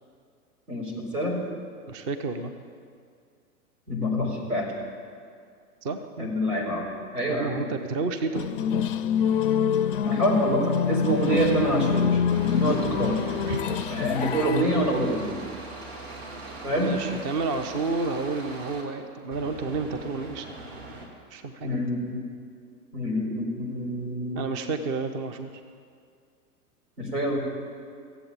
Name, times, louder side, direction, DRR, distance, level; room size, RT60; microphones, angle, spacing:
voice 1, 0.7-1.4 3.9-4.7 6.2-6.9 7.1-7.6 10.0-13.2 13.9-15.3 16.6-16.9 21.6-22.2 22.9-24.4 27.0-27.4, equal, 75° right, -2 dB, 4.3 m, -26 dB
voice 2, 1.9-2.5 5.8-6.3 7.3-8.5 12.6-12.7 13.5-13.8 16.6-20.5 21.3-21.8 24.3-25.5, right 4 dB, 20° right, 7 dB, 0.5 m, -31 dB
sound 1, 8.3-14.6, left 8 dB, 40° left, 0.4 m, -26 dB
sound 2, 11.1-12.0 12.3-18.8 19.3-21.1, right 3 dB, 40° right, 2.7 m, -41 dB
15.5 x 8.1 x 8.6 m, 2.2 s
figure-of-eight pair, 105°, 46 cm